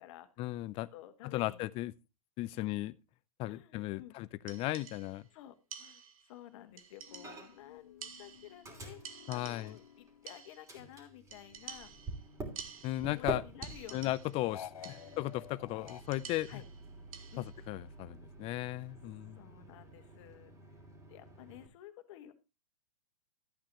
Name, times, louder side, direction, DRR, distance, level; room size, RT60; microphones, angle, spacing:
voice 1, 0.4-0.9 1.2-1.9 2.4-2.9 3.4-5.3 9.3-9.8 12.8-13.4 13.9-16.6 17.4-19.4, left 17 dB, 30° left, 0.5 m, -36 dB
voice 2, 0.9-1.7 2.4-2.7 3.5-4.1 5.3-11.9 13.0-14.1 14.8-15.3 15.7-15.9 16.5-16.6 17.3-17.6 19.3-20.5 21.1-22.3, left 13 dB, 50° left, 1.7 m, -53 dB
sound 1, 4.5-5.3 5.7-6.4 6.8-7.6 8.0-8.7 9.0-9.9 10.3-10.8 11.3-13.3 13.6-14.5 14.8-15.3 15.9-17.6, right 7 dB, 65° right, 1.6 m, -50 dB
sound 2, 7.1-10.9 11.3-12.9 14.4-16.0, left 9 dB, 70° left, 0.9 m, -53 dB
Microwave oven, 7.2-7.7 8.0-10.3 10.7-21.7, right 1 dB, 15° right, 2.9 m, -47 dB
13.5 x 8.7 x 3.0 m
hypercardioid pair, 115°, 19 cm